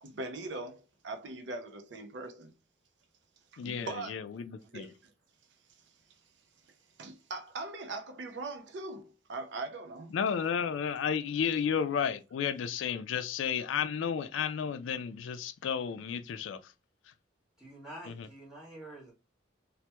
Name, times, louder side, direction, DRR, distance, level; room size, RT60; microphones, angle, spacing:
voice 1, 0.0-2.5 3.5-4.2 4.6-4.9 7.0-10.2, right 3 dB, 65° right, 0.5 m, -41 dB
voice 2, 3.6-4.9 10.1-16.7 18.1-18.3, left 7 dB, 80° left, 0.3 m, -32 dB
voice 3, 17.6-19.1, right 1 dB, 5° right, 1.6 m, -47 dB
3.3 x 2.1 x 2.9 m
head